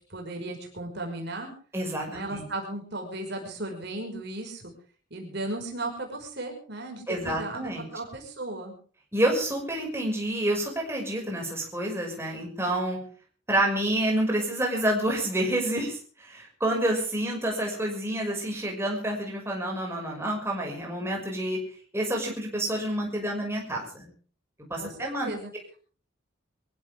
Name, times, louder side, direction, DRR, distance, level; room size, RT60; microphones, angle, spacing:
voice 1, 0.1-1.5 2.1-4.6 5.1-8.7 24.8-25.5, right 2 dB, 55° right, 2 dB, 5.5 m, -36 dB
voice 2, 1.7-2.4 7.1-7.8 9.1-13.0 13.5-21.6 21.9-24.1 24.7-25.3, right 1 dB, 10° right, -1 dB, 6.1 m, -28 dB
24.0 x 15.5 x 3.6 m, 0.42 s
head